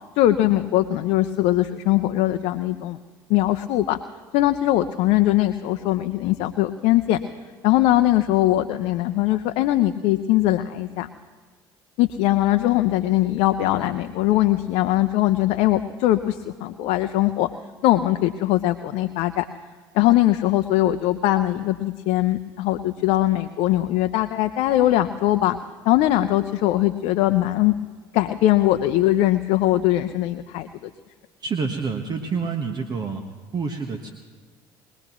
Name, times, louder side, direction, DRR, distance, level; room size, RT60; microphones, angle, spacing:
voice 1, 0.2-3.0 3.3-4.0 4.3-7.2 7.6-11.1 12.0-17.5 17.8-19.4 19.9-25.6 25.9-27.7 28.1-30.7, left 15 dB, 65° left, 8 dB, 0.6 m, -21 dB
voice 2, 31.4-33.2 33.5-34.1, right 5 dB, 40° right, 5 dB, 1.2 m, -27 dB
22.5 x 19.0 x 3.1 m, 1.4 s
hypercardioid pair, 70°, 11 cm